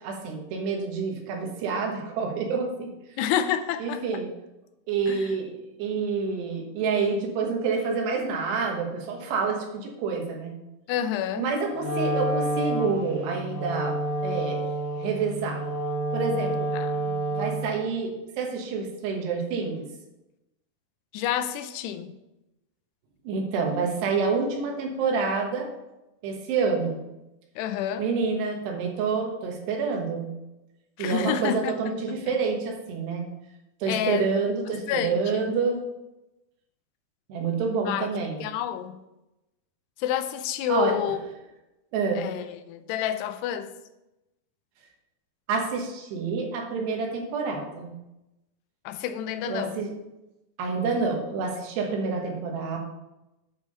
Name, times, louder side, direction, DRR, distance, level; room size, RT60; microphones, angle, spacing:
voice 1, 0.0-2.9 3.8-4.3 4.9-5.5 5.8-10.5 11.4-14.0 14.2-14.6 15.0-15.6 16.1-16.7 17.3-19.9 23.2-25.7 26.2-27.0 28.0-30.3 31.0-33.3 33.8-35.8 37.3-38.4 40.7-41.0 41.9-42.3 45.5-47.9 49.4-49.9 50.6-52.8, right 4 dB, 85° right, 3.5 m, -28 dB
voice 2, 3.2-4.2 5.1-5.4 10.9-11.5 16.7-17.2 21.1-22.1 27.6-28.1 31.0-31.8 32.1-32.2 33.9-34.3 34.9-35.5 37.9-38.1 38.4-39.0 40.0-41.2 42.2-43.7 48.9-49.9, left 9 dB, 85° left, 2.7 m, -29 dB
Wind instrument woodwind instrument, 11.8-17.8, right 1 dB, 55° left, 3.4 m, -29 dB
9.0 x 5.2 x 5.4 m
omnidirectional pair, 4.7 m